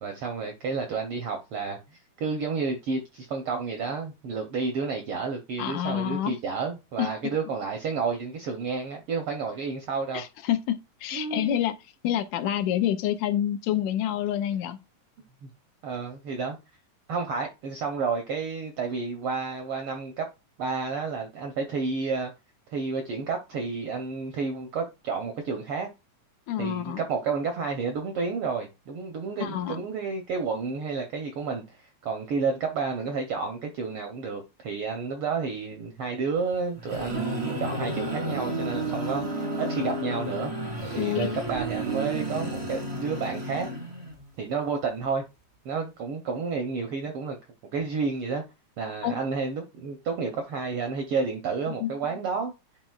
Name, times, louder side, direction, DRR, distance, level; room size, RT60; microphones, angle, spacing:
voice 1, 0.0-10.2 11.1-11.6 15.4-15.5 15.8-16.6 17.1-20.3 20.6-22.3 22.7-25.9 26.6-40.5 40.9-43.7 44.4-45.2 45.6-47.4 47.7-48.4 48.8-52.5, right 5 dB, 75° right, 1.3 m, -31 dB
voice 2, 5.6-6.4 7.0-7.1 10.1-11.8 12.0-14.8 26.5-27.0 29.4-29.8 41.0-41.4 49.0-49.1 51.8-51.9, left 11 dB, 80° left, 1.9 m, -27 dB
sound 1, 36.5-44.2, right 1 dB, 35° right, 0.6 m, -32 dB
11.0 x 4.0 x 2.3 m
omnidirectional pair, 3.5 m